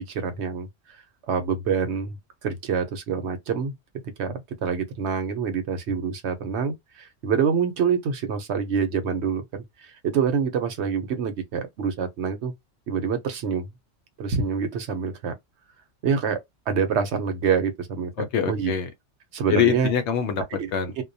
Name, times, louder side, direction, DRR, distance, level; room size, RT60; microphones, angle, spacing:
voice 1, 0.1-0.7 1.3-2.1 2.4-3.7 4.2-12.5 12.9-13.7 14.2-15.3 16.0-16.4 16.7-18.1 18.5-18.7 19.3-19.9 20.6-20.7 21.0-21.1, right 6 dB, 70° right, 0.9 m, -26 dB
voice 2, 18.2-18.9 19.5-21.0, left 7 dB, 70° left, 0.8 m, -24 dB
2.2 x 2.1 x 2.6 m
omnidirectional pair, 1.3 m